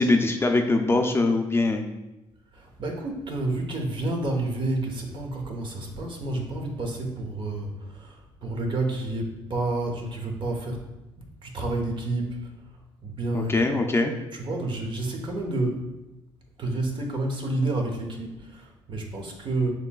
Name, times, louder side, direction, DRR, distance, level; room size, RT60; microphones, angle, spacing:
voice 1, 0.0-1.8 13.3-14.1, left 2 dB, 20° left, 4 dB, 0.5 m, -22 dB
voice 2, 2.5-10.8 11.2-12.5 13.0-13.6 14.3-15.9 16.6-19.7, right 2 dB, 45° right, 2 dB, 1.0 m, -30 dB
6.5 x 2.9 x 2.3 m, 1.0 s
supercardioid pair, 70°, 11 cm